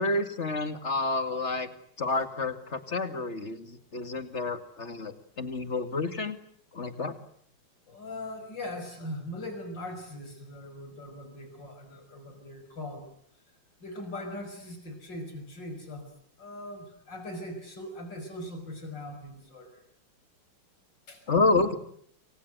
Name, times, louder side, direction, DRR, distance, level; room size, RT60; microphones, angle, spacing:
voice 1, 0.0-1.7 2.0-6.4 6.7-7.1 21.3-21.8, left 3 dB, 40° left, 9 dB, 2.6 m, -29 dB
voice 2, 7.9-13.1 13.8-16.1 16.4-19.8 21.1-21.2, left 1 dB, 85° left, 7 dB, 6.4 m, -40 dB
28.5 x 25.5 x 8.0 m, 0.65 s
omnidirectional pair, 1.9 m